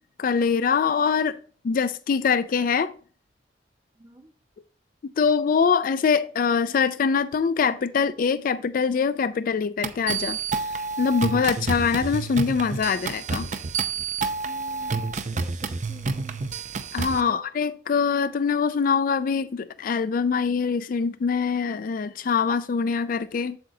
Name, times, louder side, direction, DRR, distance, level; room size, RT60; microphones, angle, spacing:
voice 1, 0.2-1.4 1.6-2.9 5.2-13.5 16.9-23.6, left 6 dB, 50° left, 0.4 m, -24 dB
voice 2, 3.9-4.3 14.4-16.5 17.2-17.4, right 2 dB, 20° right, 1.3 m, -47 dB
sound 1, 9.8-17.2, right 4 dB, 45° right, 0.6 m, -29 dB
7.8 x 7.6 x 2.7 m
head